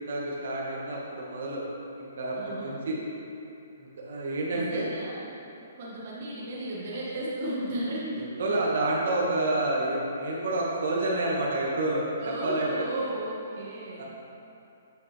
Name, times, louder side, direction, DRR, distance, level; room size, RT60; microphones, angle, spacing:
voice 1, 0.1-1.6 2.0-3.0 3.8-4.9 8.4-12.7 14.0-14.1, right 2 dB, 70° right, -4 dB, 1.5 m, -29 dB
voice 2, 2.3-2.7 4.5-5.3 5.8-8.3 12.2-14.0, right 1 dB, 50° right, -7 dB, 1.3 m, -34 dB
8.3 x 5.8 x 3.3 m, 2.7 s
hypercardioid pair, 160°, 0 cm